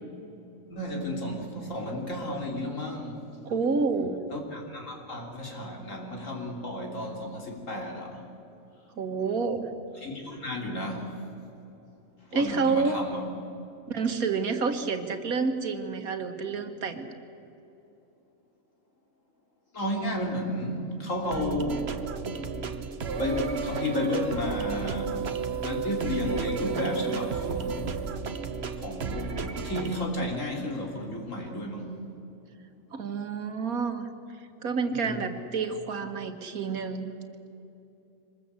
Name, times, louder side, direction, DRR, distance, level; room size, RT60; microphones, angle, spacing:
voice 1, 0.7-3.2 4.3-8.2 10.0-11.1 12.3-13.2 19.7-21.9 22.4-22.5 23.2-25.2 25.6-27.9 28.8-29.3 29.6-32.0 34.9-35.2, left 1 dB, 60° left, 1 dB, 3.7 m, -32 dB
voice 2, 3.5-4.2 9.0-9.7 12.3-13.0 13.9-17.1 32.9-34.1 34.4-37.1, right 4 dB, 90° right, 7 dB, 2.1 m, -29 dB
sound 1, 21.2-30.0, right 5 dB, 50° right, 1.4 m, -32 dB
25.0 x 20.5 x 8.3 m, 2.9 s
omnidirectional pair, 1.5 m